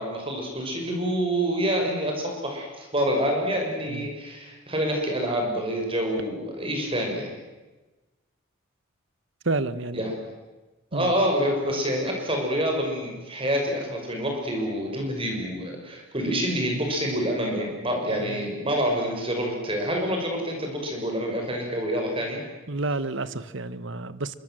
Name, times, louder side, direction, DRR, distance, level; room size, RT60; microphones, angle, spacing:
voice 1, 0.0-7.4 9.9-10.3 10.9-22.4, equal, 25° right, 2 dB, 5.8 m, -27 dB
voice 2, 9.4-10.1 10.9-11.1 18.2-18.5 22.7-24.3, right 3 dB, 65° right, 15 dB, 1.2 m, -30 dB
27.0 x 24.0 x 7.7 m, 1.2 s
head